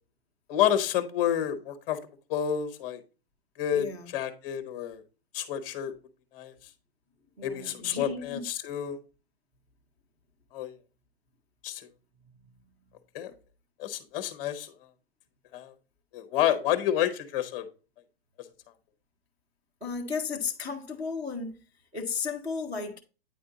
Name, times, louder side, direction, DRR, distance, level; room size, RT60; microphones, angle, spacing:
voice 1, 0.5-2.0 2.3-3.0 3.6-3.9 4.1-5.0 5.3-5.9 6.3-6.5 7.4-9.0 10.5-10.7 11.6-11.9 13.1-13.3 13.8-14.7 15.5-15.7 16.1-17.6, left 10 dB, 20° left, 0.9 m, -29 dB
voice 2, 3.7-4.1 7.4-8.5 19.8-21.5 21.9-23.0, left 5 dB, 5° right, 0.5 m, -34 dB
9.3 x 4.3 x 3.8 m
hypercardioid pair, 170°, 31 cm